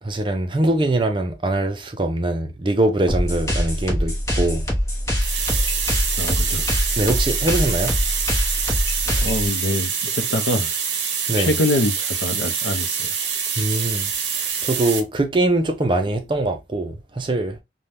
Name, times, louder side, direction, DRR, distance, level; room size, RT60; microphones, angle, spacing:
voice 1, 0.0-4.6 7.0-8.0 11.3-11.5 13.6-14.1 14.4-17.6, right 2 dB, 25° right, 0.4 m, -22 dB
sound 1, 3.1-9.5, equal, 15° left, 0.8 m, -23 dB
sound 2, 5.2-15.0, right 7 dB, 70° right, 0.7 m, -25 dB
voice 2, 6.2-6.7 9.0-10.7 11.3-13.1, left 1 dB, 85° left, 0.7 m, -24 dB
2.7 x 2.2 x 3.2 m
head